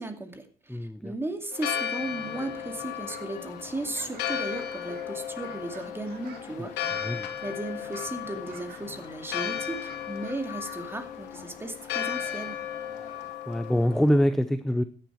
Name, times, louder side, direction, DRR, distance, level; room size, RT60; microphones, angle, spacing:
voice 1, 0.0-6.8 7.0-12.6, right 2 dB, 15° right, 7 dB, 2.3 m, -36 dB
voice 2, 0.7-1.1 6.6-6.7 7.0-7.3 13.5-14.8, equal, ahead, 11 dB, 0.7 m, -25 dB
Church bell, 1.5-14.2, left 9 dB, 80° left, 2.7 m, -35 dB
sound 1, 1.7-2.0 2.2-3.4 3.7-6.5 6.9-7.4 7.7-8.9 9.2-10.9, right 8 dB, 70° right, 1.9 m, -49 dB
sound 2, 1.9-13.3, left 5 dB, 45° left, 3.5 m, -50 dB
14.5 x 10.5 x 4.7 m, 0.40 s
cardioid pair, 110°, 17 cm